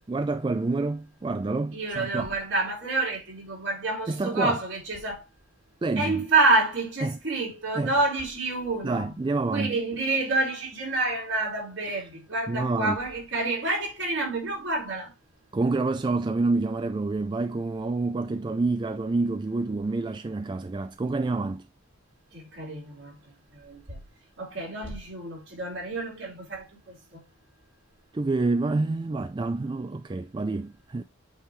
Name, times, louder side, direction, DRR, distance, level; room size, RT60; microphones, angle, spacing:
voice 1, 0.0-2.3 4.1-4.6 5.8-6.2 7.0-7.2 7.7-7.9 8.8-9.8 11.9-12.0 12.5-13.0 15.5-21.7 28.1-31.0, right 3 dB, 20° right, 0.3 m, -28 dB
voice 2, 1.7-5.2 6.0-9.1 9.5-15.1 22.3-23.2 23.5-24.0 24.4-27.2, right 2 dB, 60° right, 3.7 m, -28 dB
8.5 x 3.7 x 3.0 m
head